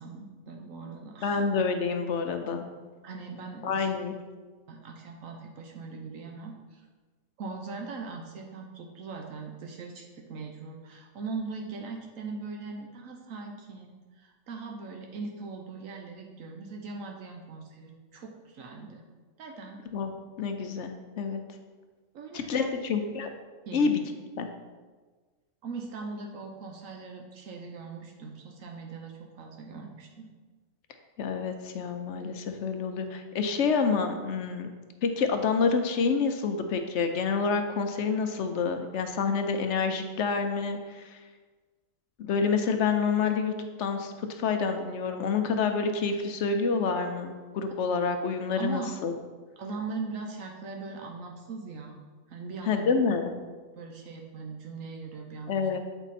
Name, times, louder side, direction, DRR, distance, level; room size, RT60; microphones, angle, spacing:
voice 1, 0.0-1.4 3.0-3.9 4.7-6.9 7.4-19.0 19.4-19.8 22.1-22.7 23.7-23.9 25.6-30.3 48.6-48.9 49.6-52.0 52.3-52.9 53.8-55.7, right 4 dB, 80° right, 1 dB, 1.1 m, -40 dB
voice 2, 1.2-2.7 3.6-4.1 19.9-21.4 22.3-23.3 23.7-24.0 24.4-24.5 31.2-34.7 35.0-41.2 42.2-43.5 43.8-49.1 52.7-53.3 55.5-55.8, left 5 dB, 65° left, 6 dB, 0.9 m, -28 dB
7.9 x 4.6 x 4.1 m, 1.4 s
omnidirectional pair, 1.4 m